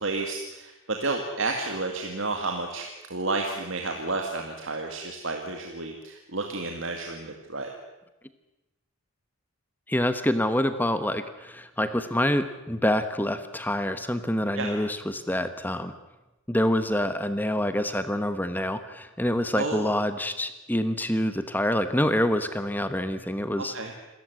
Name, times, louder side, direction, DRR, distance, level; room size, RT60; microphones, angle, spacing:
voice 1, 0.0-7.7 14.5-14.7 19.6-19.9 23.6-23.9, right 3 dB, 60° right, 2 dB, 2.2 m, -31 dB
voice 2, 9.9-15.9 16.5-23.7, left 1 dB, 10° left, 10 dB, 1.1 m, -26 dB
27.5 x 14.0 x 9.5 m, 1.0 s
head